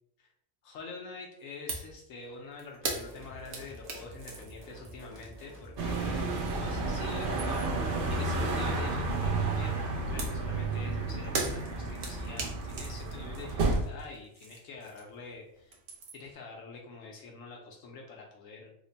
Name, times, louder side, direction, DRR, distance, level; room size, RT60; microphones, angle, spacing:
voice 1, 0.6-15.8 16.1-18.7, left 4 dB, 75° left, 0 dB, 1.0 m, -46 dB
sound 1, 1.7-2.0 2.2-6.7 7.1-7.8 10.2-15.3 15.6-16.3, right 3 dB, 75° right, 1.1 m, -40 dB
sound 2, 2.8-9.3, right 1 dB, 15° right, 0.5 m, -49 dB
sound 3, 5.8-13.8, right 3 dB, 60° right, 0.6 m, -31 dB
3.3 x 2.1 x 3.8 m, 0.73 s
omnidirectional pair, 1.4 m